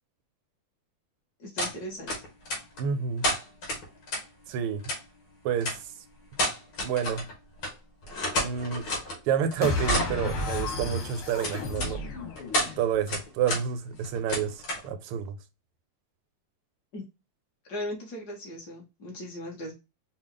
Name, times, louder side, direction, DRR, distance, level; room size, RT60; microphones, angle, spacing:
voice 1, 1.4-2.1 16.9-17.0 17.7-19.7, left 1 dB, 50° left, 2.0 m, -38 dB
sound 1, 1.6-1.7 2.1-2.8 3.2-4.2 4.8-5.0 5.6-5.8 6.3-7.3 7.6-7.7 8.0-9.2 9.5-10.2 11.4-11.9 12.4-12.7 13.1-13.6 13.9-14.9, left 1 dB, 70° left, 2.6 m, -30 dB
voice 2, 2.8-3.2 4.5-4.8 5.4-5.8 6.8-7.2 8.4-8.9 9.2-12.0 12.8-15.4, right 8 dB, 80° right, 1.5 m, -29 dB
sound 2, 9.6-13.0, left 2 dB, 90° left, 2.1 m, -32 dB
5.2 x 2.4 x 3.7 m
omnidirectional pair, 2.4 m